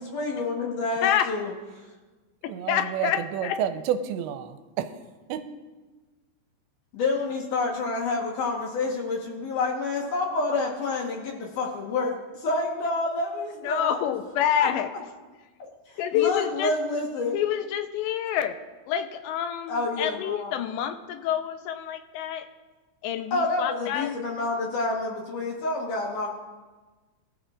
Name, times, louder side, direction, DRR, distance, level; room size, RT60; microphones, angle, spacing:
voice 1, 0.0-1.5 6.9-14.0 14.6-14.7 15.6-17.4 19.7-20.6 23.3-26.3, left 3 dB, 65° left, 0 dB, 2.2 m, -28 dB
voice 2, 1.0-1.3 2.7-3.6 13.6-14.9 16.0-16.7 17.3-18.6 18.9-22.5 23.0-24.1, left 10 dB, 90° left, 8 dB, 2.9 m, -27 dB
voice 3, 2.5-4.9 5.3-5.4, right 9 dB, 85° right, 8 dB, 2.9 m, -30 dB
23.0 x 13.0 x 2.5 m, 1.3 s
omnidirectional pair, 5.2 m